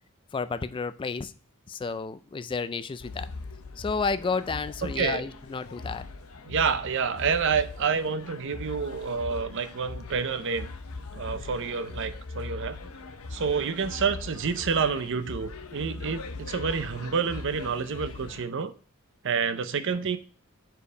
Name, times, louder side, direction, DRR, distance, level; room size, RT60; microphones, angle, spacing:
voice 1, 0.3-1.3 1.7-3.3 3.8-6.1, left 4 dB, 25° left, 13 dB, 0.3 m, -31 dB
sound 1, 3.0-18.4, left 3 dB, 85° left, 0.7 m, -40 dB
voice 2, 4.8-5.2 6.5-10.7 11.1-12.8 13.3-18.7 19.2-20.2, right 5 dB, 60° right, 11 dB, 0.6 m, -28 dB
5.2 x 4.6 x 4.8 m, 0.41 s
head